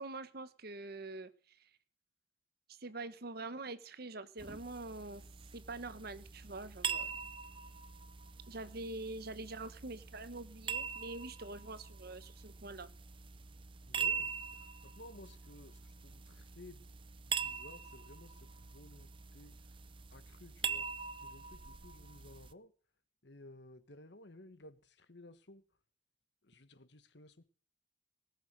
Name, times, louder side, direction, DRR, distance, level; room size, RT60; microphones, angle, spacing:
voice 1, 0.0-1.7 2.7-5.3 5.5-7.1 8.5-12.9, right 2 dB, 55° right, 1.1 m, -45 dB
sound 1, 4.4-22.5, right 6 dB, 30° right, 0.6 m, -43 dB
voice 2, 13.9-16.8 17.3-19.8 20.1-22.7 23.2-25.6 26.4-27.5, left 1 dB, 65° left, 1.5 m, -56 dB
18.5 x 7.3 x 7.8 m
head